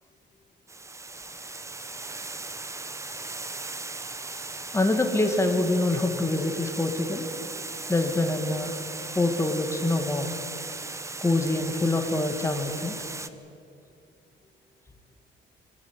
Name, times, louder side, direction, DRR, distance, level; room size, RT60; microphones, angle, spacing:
Water, 0.7-13.3, right 3 dB, 15° right, 0.9 m, -37 dB
voice 1, 4.7-7.2 7.9-8.8 9.1-10.3 11.2-13.0, left 2 dB, 15° left, 5 dB, 2.1 m, -25 dB
24.5 x 16.0 x 9.7 m, 2.5 s
cardioid pair, 145°, 20 cm